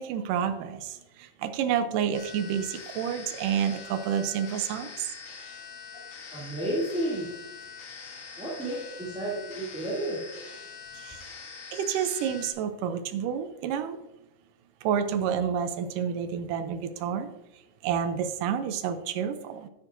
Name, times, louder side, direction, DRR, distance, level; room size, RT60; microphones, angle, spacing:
voice 1, 0.0-5.1 10.9-11.2 11.7-14.0 14.8-17.3 17.8-19.7, right 8 dB, 75° right, 9 dB, 2.1 m, -29 dB
sound 1, 2.1-12.5, left 5 dB, 60° left, 1.3 m, -44 dB
voice 2, 6.3-7.3 8.4-10.2, right 1 dB, ahead, -8 dB, 1.7 m, -31 dB
11.0 x 9.9 x 2.6 m, 0.92 s
omnidirectional pair, 4.2 m